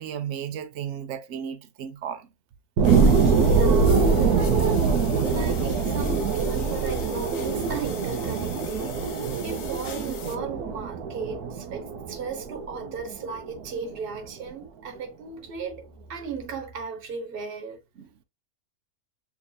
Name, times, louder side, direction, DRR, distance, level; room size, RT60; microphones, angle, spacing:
voice 1, 0.0-2.3 18.0-18.2, right 9 dB, 65° right, 0.8 m, -34 dB
sound 1, 2.8-10.4, left 7 dB, 65° left, 1.1 m, -42 dB
sound 2, 2.8-13.8 14.2-14.3, right 5 dB, 85° right, 1.2 m, -23 dB
voice 2, 3.0-4.9 5.2-17.8, right 5 dB, 40° right, 1.2 m, -36 dB
7.0 x 2.8 x 2.2 m
omnidirectional pair, 1.6 m